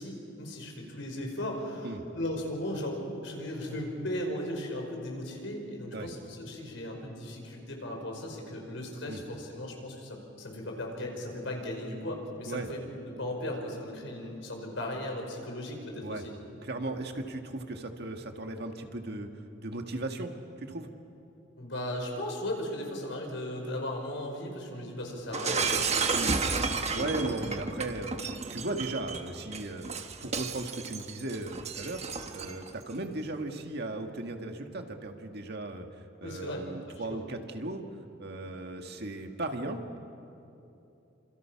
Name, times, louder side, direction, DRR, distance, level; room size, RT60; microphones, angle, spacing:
voice 1, 0.0-12.8 13.2-16.3 21.6-25.9 26.9-27.1 36.2-36.6 36.9-37.2, left 1 dB, 80° left, 1 dB, 5.3 m, -37 dB
voice 2, 16.6-20.3 20.6-20.9 26.1-26.6 26.9-29.9 30.2-32.0 32.3-37.8 38.2-40.0, right 2 dB, 60° right, 4 dB, 1.8 m, -37 dB
Shatter, 25.3-32.7, right 4 dB, 35° right, 1.3 m, -32 dB
29.0 x 26.5 x 5.9 m, 2.8 s
head